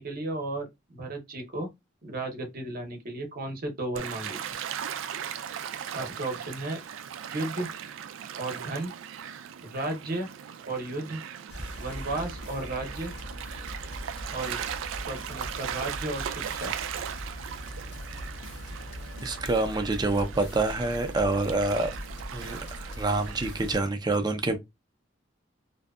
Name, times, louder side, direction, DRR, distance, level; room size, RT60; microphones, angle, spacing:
voice 1, 0.0-1.7 2.0-4.4 5.9-6.8 7.3-7.7 8.4-8.9 9.6-10.3 10.7-11.2 11.8-13.1 14.3-14.6 15.1-16.7, right 2 dB, 50° right, 0.8 m, -34 dB
Gull seagull / Waves surf, 4.0-23.8, right 8 dB, 85° right, 0.3 m, -38 dB
sound 1, 11.5-23.8, equal, 60° left, 0.5 m, -41 dB
voice 2, 19.2-21.9 22.3-24.6, right 2 dB, 20° right, 0.5 m, -27 dB
2.6 x 2.2 x 2.3 m
head